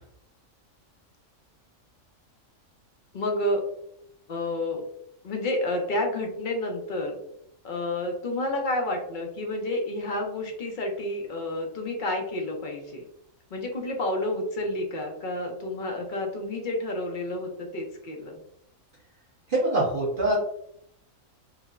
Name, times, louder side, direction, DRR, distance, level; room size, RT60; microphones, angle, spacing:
voice 1, 3.1-3.6 4.3-4.8 5.2-7.2 7.6-13.0 13.5-18.4, left 1 dB, 50° left, 2 dB, 0.6 m, -30 dB
voice 2, 19.5-20.4, right 2 dB, 45° right, -5 dB, 1.0 m, -24 dB
4.8 x 2.1 x 2.4 m, 0.74 s
omnidirectional pair, 1.4 m